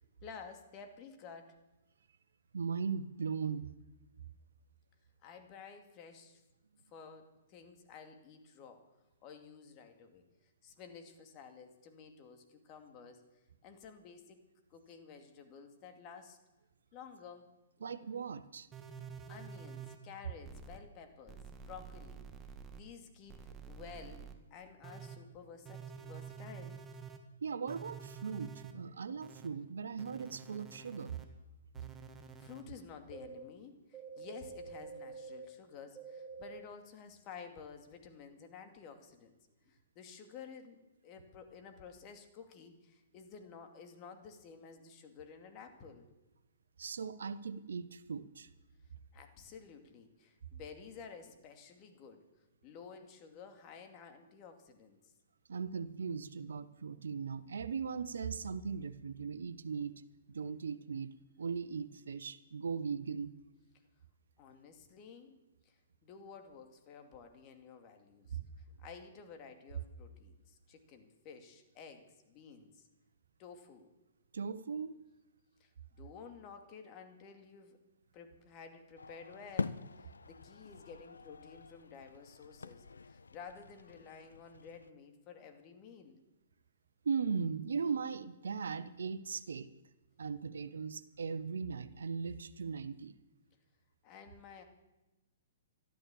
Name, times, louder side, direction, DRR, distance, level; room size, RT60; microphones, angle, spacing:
voice 1, 0.2-1.6 5.2-6.4 6.9-8.8 9.2-10.2 10.6-13.2 13.6-14.4 14.7-16.4 16.9-17.5 19.3-22.2 22.7-26.8 31.8-31.9 32.4-39.4 39.7-46.1 49.1-52.2 52.6-55.1 64.4-65.4 65.6-72.9 73.4-73.9 75.6-75.7 76.0-77.8 78.1-86.2 94.0-94.6, left 6 dB, 35° left, 6 dB, 2.5 m, -52 dB
voice 2, 2.5-3.7 17.8-18.7 27.4-31.2 46.8-48.5 55.5-59.9 60.3-61.1 61.4-63.3 68.3-68.4 74.3-75.0 87.0-89.7 90.2-93.1, right 5 dB, 70° right, 14 dB, 1.0 m, -38 dB
sound 1, 18.7-20.0 20.4-20.8 21.3-22.8 23.3-24.3 24.8-25.2 25.7-27.2 27.7-28.7 29.2-29.5 30.0-31.3 31.7-32.6 33.1-33.4 33.9-35.5 36.0-36.6, right 6 dB, 15° right, 1.7 m, -48 dB
sound 2, 79.0-84.9, left 4 dB, 80° left, 0.6 m, -45 dB
12.5 x 12.5 x 7.2 m, 1.0 s
figure-of-eight pair, 120°, 0 cm